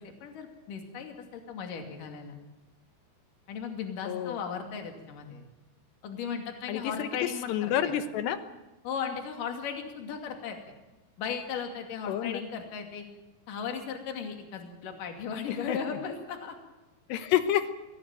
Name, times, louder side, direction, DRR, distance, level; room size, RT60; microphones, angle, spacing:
voice 1, 0.0-2.4 3.5-5.5 6.0-7.9 8.8-10.6 11.2-13.1 13.5-16.6, left 6 dB, 50° left, 4 dB, 3.8 m, -36 dB
voice 2, 4.1-4.4 6.7-8.4 12.1-12.4 15.5-16.0 17.1-17.7, left 10 dB, 75° left, 10 dB, 3.2 m, -29 dB
22.0 x 16.5 x 9.2 m, 1.1 s
omnidirectional pair, 5.2 m